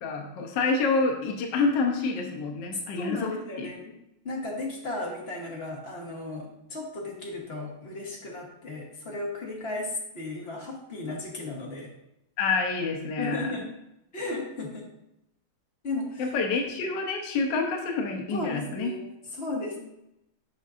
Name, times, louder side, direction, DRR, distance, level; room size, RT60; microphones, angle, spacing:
voice 1, 0.0-3.7 12.4-13.5 16.2-18.9, left 4 dB, 65° left, 2 dB, 1.3 m, -28 dB
voice 2, 2.9-3.9 4.2-11.9 13.2-13.8 14.1-14.8 15.8-16.3 18.3-19.8, left 2 dB, 40° left, -1 dB, 1.0 m, -35 dB
8.1 x 5.1 x 2.5 m, 0.84 s
omnidirectional pair, 2.3 m